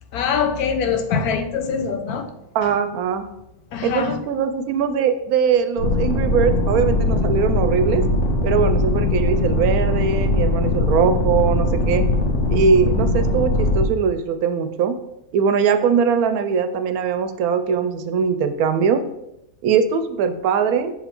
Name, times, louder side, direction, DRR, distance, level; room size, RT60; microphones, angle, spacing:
voice 1, 0.1-2.3 3.7-4.2, left 6 dB, 75° left, 1.2 m, -23 dB
voice 2, 2.5-3.2 3.8-8.0 8.4-12.1 12.5-14.9 15.3-19.0 19.6-20.9, right 6 dB, 75° right, 1.0 m, -21 dB
sound 1, 5.8-13.9, left 2 dB, 55° left, 1.2 m, -20 dB
6.0 x 4.0 x 4.4 m
omnidirectional pair, 1.6 m